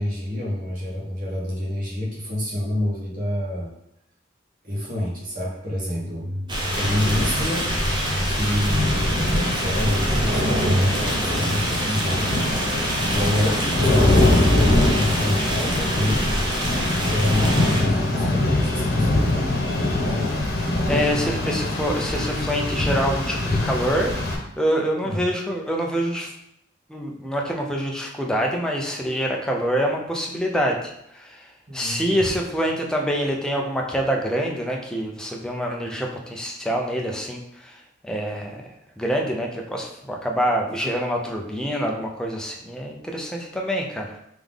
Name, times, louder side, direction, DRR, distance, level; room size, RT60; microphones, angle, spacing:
voice 1, 0.0-3.7 4.6-6.3 6.7-7.7 8.3-12.4 13.1-16.2 17.0-19.5 25.0-25.2 31.7-32.3, left 1 dB, 50° right, -6 dB, 1.5 m, -28 dB
sound 1, 5.9-11.0, equal, 90° right, 1.2 m, -31 dB
sound 2, 6.5-17.8, right 1 dB, 25° right, 0.9 m, -26 dB
Rain, 6.7-24.3, left 2 dB, 55° left, 1.1 m, -23 dB
voice 2, 20.9-24.1 24.6-26.3 26.9-38.7 39.0-44.2, equal, 5° left, 0 dB, 0.5 m, -26 dB
3.6 x 3.5 x 3.6 m, 0.77 s
head